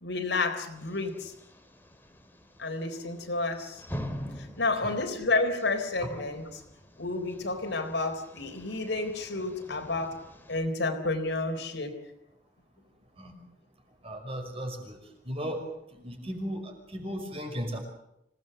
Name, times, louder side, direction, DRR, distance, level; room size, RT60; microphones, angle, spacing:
voice 1, 0.0-1.3 2.6-3.8 4.6-6.6 7.0-10.1 10.5-11.9, left 3 dB, 75° left, 4 dB, 4.0 m, -30 dB
sound 1, 0.7-10.6, equal, 10° left, 2.5 m, -45 dB
voice 2, 14.0-15.0 15.3-15.6 16.0-17.8, equal, 35° right, 3 dB, 5.6 m, -36 dB
26.0 x 18.0 x 7.9 m, 0.83 s
head